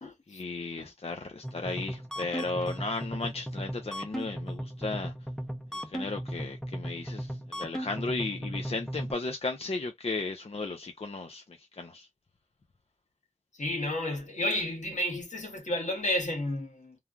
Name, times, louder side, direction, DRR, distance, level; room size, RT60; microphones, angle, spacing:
voice 1, 0.3-5.1 5.7-12.1, left 3 dB, 55° left, 0.5 m, -35 dB
sound 1, 1.4-9.1, equal, 5° left, 0.7 m, -37 dB
voice 2, 13.6-16.9, left 1 dB, 75° left, 1.4 m, -31 dB
3.1 x 2.3 x 2.4 m
wide cardioid pair, 55°, 12 cm